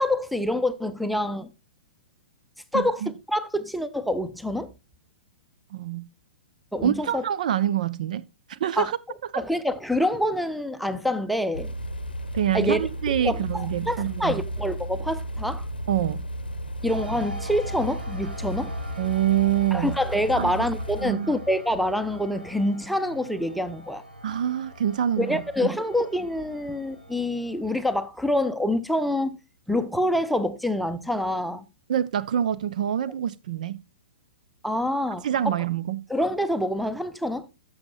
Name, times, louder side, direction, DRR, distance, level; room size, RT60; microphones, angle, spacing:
voice 1, 0.0-1.5 2.7-3.0 3.3-4.7 6.7-7.2 8.8-8.9 9.3-11.7 12.5-12.8 13.2-15.7 16.8-18.7 19.7-24.0 25.2-29.4 29.7-31.6 34.6-35.5 36.1-37.5, left 1 dB, ahead, 0.6 m, -26 dB
voice 2, 2.7-3.1 5.7-6.0 6.8-9.0 9.3-9.4 12.3-14.4 15.9-16.2 19.0-19.9 20.3-20.6 21.0-21.3 24.2-25.7 31.9-33.8 35.2-36.0, right 10 dB, 55° right, 0.4 m, -26 dB
sound 1, 11.5-21.1, right 1 dB, 80° left, 0.7 m, -33 dB
sound 2, 16.9-28.0, equal, 80° right, 1.6 m, -42 dB
12.0 x 6.4 x 2.4 m
figure-of-eight pair, 110°, 5 cm